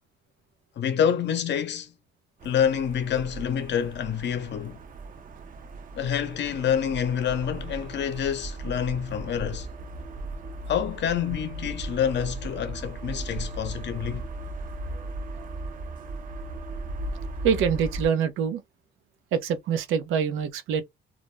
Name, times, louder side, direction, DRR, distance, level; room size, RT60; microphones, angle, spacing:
voice 1, 0.8-1.9 2.4-4.8 5.9-9.7 10.7-14.2, left 8 dB, 60° left, 0.7 m, -27 dB
sound 1, 2.4-18.1, right 2 dB, 45° right, 0.5 m, -37 dB
voice 2, 17.4-18.6 19.3-20.8, right 7 dB, 90° right, 0.6 m, -25 dB
2.5 x 2.0 x 3.1 m
cardioid pair, 90°, 20 cm